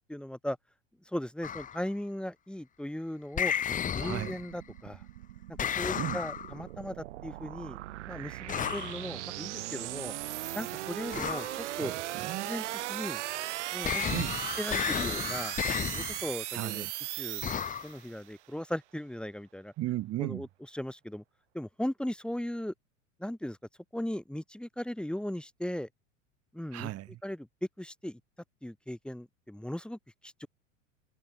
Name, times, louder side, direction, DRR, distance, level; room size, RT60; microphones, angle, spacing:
voice 1, 0.1-0.6 1.0-3.5 3.9-5.0 5.6-7.8 8.1-10.1 10.5-11.9 12.4-13.2 13.7-14.2 14.6-15.5 15.9-16.9 17.2-19.7 20.2-20.5 20.7-21.2 21.5-22.7 23.2-23.6 23.9-25.9 26.5-26.9 27.2-27.5 27.8-28.2 28.6-30.5, left 1 dB, ahead, 4.8 m, -37 dB
sound 1, 1.4-1.8 3.4-4.6 5.6-6.6 8.5-9.0 11.1-11.6 13.8-16.3 17.4-17.9, left 8 dB, 20° left, 1.2 m, -33 dB
sound 2, 3.6-18.2, right 15 dB, 60° right, 1.6 m, -38 dB
voice 2, 4.0-4.4 5.9-6.2 11.7-12.5 14.1-14.4 16.5-16.9 19.8-20.4 26.7-27.2, right 15 dB, 35° right, 3.9 m, -35 dB
figure-of-eight pair, 85°, 40 cm